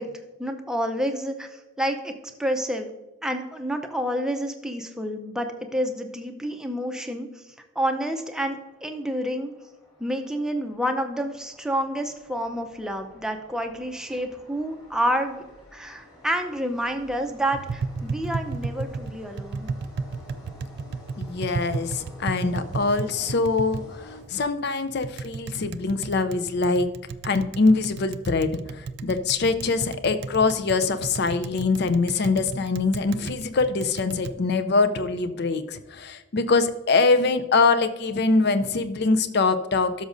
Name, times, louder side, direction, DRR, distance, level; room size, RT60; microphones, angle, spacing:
voice 1, 0.0-2.1 2.4-2.9 3.2-9.5 10.0-15.4 15.7-19.7, equal, 5° right, 4 dB, 0.6 m, -29 dB
sound 1, 7.9-24.7, left 1 dB, 20° left, 2.8 m, -50 dB
Tap, 17.5-34.3, right 4 dB, 50° right, 0.3 m, -34 dB
voice 2, 21.2-26.9 27.2-40.0, left 3 dB, 50° left, 11 dB, 0.5 m, -23 dB
13.0 x 6.4 x 2.6 m, 1.1 s
head